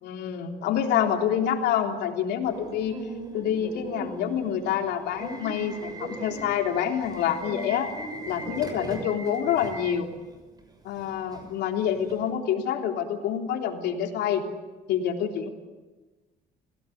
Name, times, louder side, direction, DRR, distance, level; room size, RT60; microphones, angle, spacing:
voice 1, 0.0-3.0 3.3-7.9 8.3-10.1 10.8-14.4 14.9-15.5, left 9 dB, 80° left, 3 dB, 3.5 m, -27 dB
Subway metro underground / Alarm, 2.4-12.3, right 2 dB, 25° right, 6.2 m, -40 dB
28.0 x 17.5 x 9.4 m, 1.2 s
cardioid pair, 110°, 17 cm